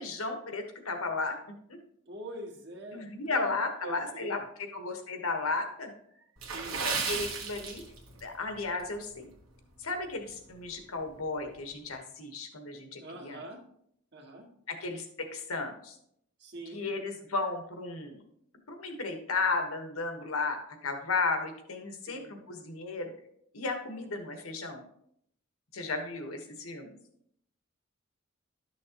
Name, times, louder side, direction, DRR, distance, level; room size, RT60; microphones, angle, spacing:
voice 1, 0.0-1.3 1.7-1.8 2.9-5.9 6.8-7.8 8.2-9.3 9.8-13.4 14.7-15.9 16.7-18.2 18.7-23.1 23.5-24.8 25.7-27.0, left 3 dB, 85° left, 5 dB, 1.3 m, -34 dB
voice 2, 2.1-3.5 3.8-4.4 6.1-6.8 13.0-13.6 14.1-14.5 16.4-16.9 22.1-22.3, right 1 dB, 55° right, 1 dB, 1.6 m, -44 dB
Water / Splash splatter, 6.4-8.3 8.6-8.8 9.4-9.6 10.1-10.2, right 5 dB, 75° right, 1.5 m, -34 dB
11.5 x 6.3 x 3.0 m, 0.72 s
head